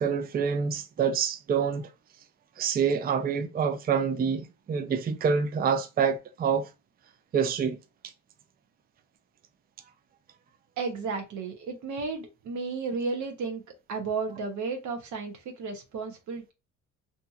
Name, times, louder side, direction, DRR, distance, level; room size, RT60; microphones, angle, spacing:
voice 1, 0.0-1.9 2.6-6.7 7.3-7.8, right 6 dB, 30° right, 0.4 m, -27 dB
voice 2, 10.8-13.6 13.9-16.5, right 4 dB, 70° right, 0.8 m, -33 dB
2.8 x 2.6 x 2.3 m
cardioid pair, 90°, 30 cm